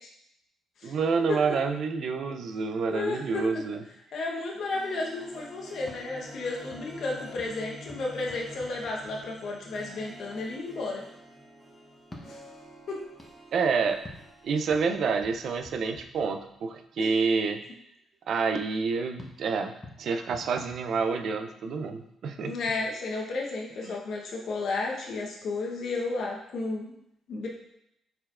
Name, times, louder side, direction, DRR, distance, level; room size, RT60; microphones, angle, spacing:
voice 1, 0.8-3.8 13.5-14.0 14.4-17.6 18.3-22.6 23.8-24.0, right 5 dB, 65° right, 6 dB, 0.4 m, -28 dB
voice 2, 2.9-3.4 4.1-11.0 12.2-12.4 12.9-13.0 17.0-17.1 22.4-26.9 27.3-27.5, left 3 dB, 65° left, -1 dB, 0.9 m, -33 dB
Harp, 4.5-15.5 15.8-15.9, right 2 dB, 25° right, 1.3 m, -51 dB
sound 1, 4.7-13.2, left 1 dB, ahead, 1.3 m, -50 dB
sound 2, 5.8-9.6 12.0-16.8 19.2-21.6, left 2 dB, 20° left, 0.8 m, -51 dB
4.5 x 4.3 x 2.4 m, 0.78 s
cardioid pair, 90°, 0 cm